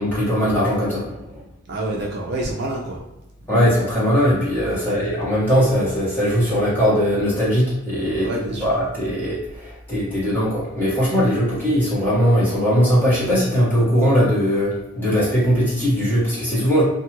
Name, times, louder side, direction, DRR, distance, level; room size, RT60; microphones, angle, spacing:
voice 1, 0.0-1.4 3.5-16.8, equal, 10° left, -10 dB, 1.2 m, -20 dB
voice 2, 1.7-3.0 4.7-5.0 8.2-8.7, right 1 dB, 50° right, -2 dB, 0.4 m, -28 dB
2.6 x 2.3 x 3.0 m, 0.98 s
head